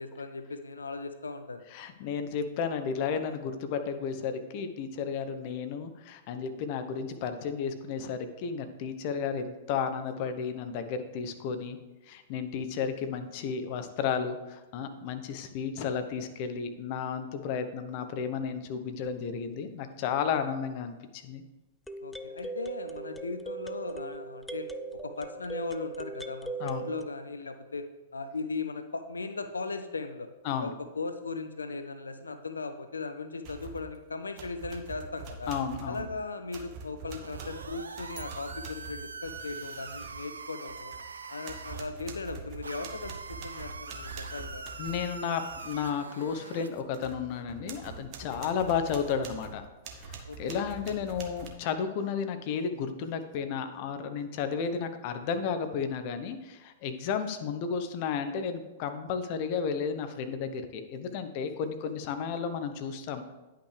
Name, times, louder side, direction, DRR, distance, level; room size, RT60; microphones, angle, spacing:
voice 1, 0.0-1.6 22.0-24.7 25.0-27.9 28.1-30.3 30.6-35.5 35.9-40.9 41.3-44.7 50.2-50.7, left 4 dB, 80° left, 9 dB, 0.5 m, -38 dB
voice 2, 1.7-11.8 12.1-21.4 26.6-26.9 30.4-30.7 35.5-36.0 44.8-49.6 50.0-63.3, left 6 dB, 45° left, 8 dB, 0.8 m, -33 dB
sound 1, 19.1-19.2 21.9-27.1, right 4 dB, 5° left, 0.4 m, -39 dB
sound 2, 33.4-34.0 34.4-41.1 41.4-45.8 46.2-46.3 46.7-51.5, right 4 dB, 40° right, 1.1 m, -45 dB
sound 3, 37.2-41.8 42.6-46.8, right 4 dB, 80° right, 0.5 m, -43 dB
10.0 x 5.7 x 3.3 m, 1.1 s
figure-of-eight pair, 105°, 0 cm